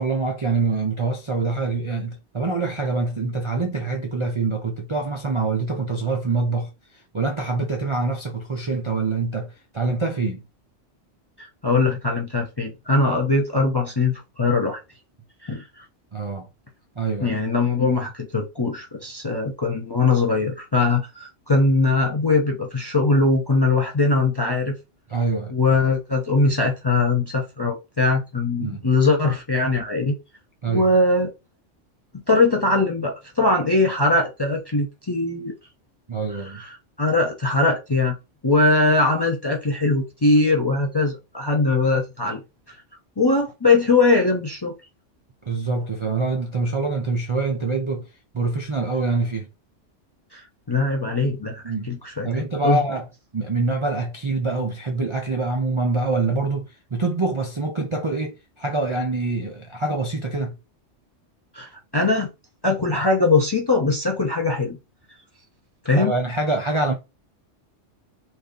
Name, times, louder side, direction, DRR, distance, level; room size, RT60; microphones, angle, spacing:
voice 1, 0.0-6.7 7.1-10.4 16.1-16.5 17.0-17.4 25.1-25.5 28.6-28.8 30.6-30.9 36.1-36.6 45.5-48.1 48.3-49.5 51.6-52.0 52.2-53.1 53.3-60.6 66.0-66.9, right 3 dB, 40° right, 0.4 m, -25 dB
voice 2, 11.4-14.8 15.4-15.8 17.2-24.7 25.5-30.2 30.7-31.3 32.3-35.5 36.3-38.2 38.4-42.4 43.2-44.7 50.3-52.8 61.5-62.3 62.6-64.8 65.8-66.1, left 3 dB, 30° left, 0.5 m, -21 dB
3.2 x 2.7 x 3.7 m
omnidirectional pair, 1.2 m